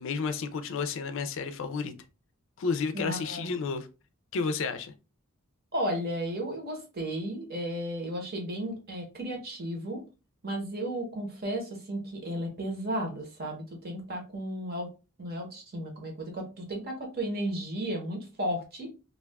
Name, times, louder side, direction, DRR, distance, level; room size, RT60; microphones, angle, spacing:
voice 1, 0.0-1.9 2.6-3.9 4.3-4.9, left 5 dB, 60° left, 0.4 m, -31 dB
voice 2, 2.9-3.5 5.7-10.0 10.4-14.9 15.2-18.9, right 1 dB, 45° right, 1.0 m, -34 dB
2.5 x 2.3 x 3.3 m
head